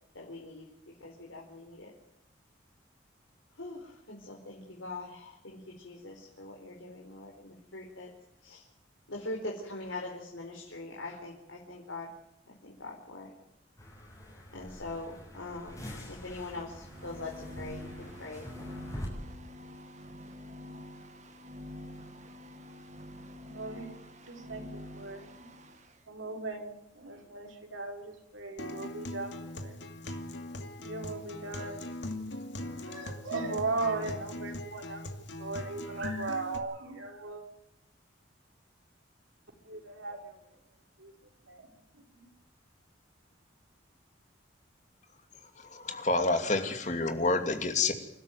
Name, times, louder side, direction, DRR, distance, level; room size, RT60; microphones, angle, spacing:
voice 1, 0.1-0.6 1.0-1.9 3.6-8.1 8.4-8.6 9.1-12.1 12.5-13.3 14.5-18.5, left 2 dB, 85° left, -1 dB, 4.5 m, -42 dB
sound 1, 13.8-19.1, equal, 15° left, 7.2 m, -45 dB
sound 2, 16.8-25.9, left 1 dB, 35° right, 2.1 m, -47 dB
voice 2, 23.4-23.9 24.3-25.3 26.1-29.8 30.8-31.8 32.8-35.0 35.4-37.4 39.6-40.3 41.0-41.1 41.5-41.7 42.1-42.3, right 3 dB, 90° right, 2 dB, 4.9 m, -38 dB
Acoustic guitar, 28.6-36.6, left 1 dB, 65° left, 2.4 m, -40 dB
voice 3, 45.6-47.9, left 3 dB, 40° left, 7 dB, 2.7 m, -28 dB
28.0 x 13.0 x 9.2 m, 0.84 s
head